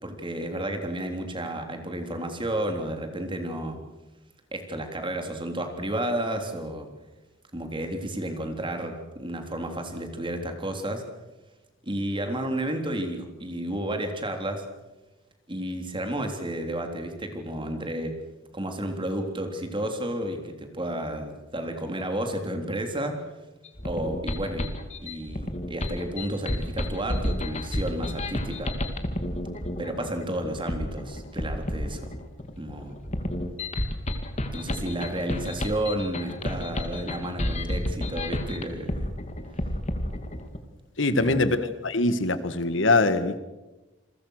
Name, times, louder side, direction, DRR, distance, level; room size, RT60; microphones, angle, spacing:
voice 1, 0.0-3.8 4.5-6.9 7.5-11.0 11.8-14.6 15.5-18.1 18.5-23.2 23.8-24.7 25.0-28.7 29.8-32.1 32.6-33.0 34.5-39.1 41.1-41.5, right 1 dB, 25° right, 5 dB, 3.5 m, -31 dB
sound 1, 23.6-40.6, left 1 dB, 35° left, 2.4 m, -31 dB
voice 2, 41.0-43.4, left 2 dB, 75° left, 12 dB, 1.7 m, -23 dB
28.5 x 22.0 x 6.6 m, 1.1 s
head